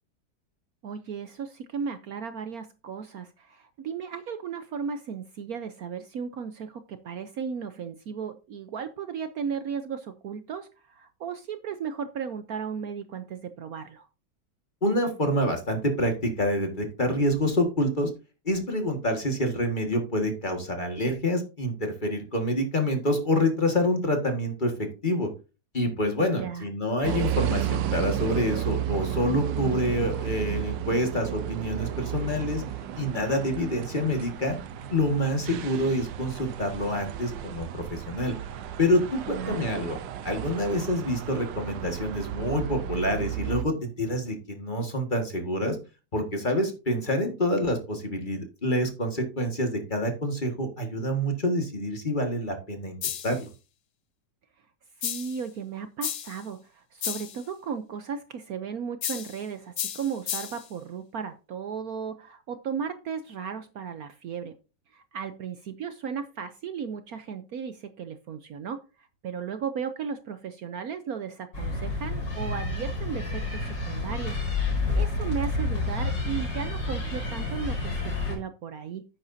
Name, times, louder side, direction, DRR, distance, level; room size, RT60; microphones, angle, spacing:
voice 1, 0.8-14.1 26.2-26.6 39.3-39.7 55.0-64.5 64.9-79.0, right 6 dB, 65° right, 10 dB, 1.1 m, -35 dB
voice 2, 14.8-18.1 18.4-24.7 25.0-25.3 25.7-32.6 32.9-34.6 34.9-38.3 38.8-40.0 40.2-45.8 46.1-53.0 53.2-53.5, left 1 dB, 25° left, 4 dB, 1.8 m, -27 dB
sound 1, 27.0-43.6, right 11 dB, 85° right, 1.5 m, -33 dB
sound 2, 53.0-53.4 55.0-55.4 56.0-56.4 57.0-57.4 59.0-59.4 59.8-60.7, left 10 dB, 60° left, 0.9 m, -33 dB
sound 3, 71.5-78.4, left 2 dB, 80° left, 5.6 m, -29 dB
10.5 x 8.8 x 2.7 m, 0.32 s
omnidirectional pair, 1.9 m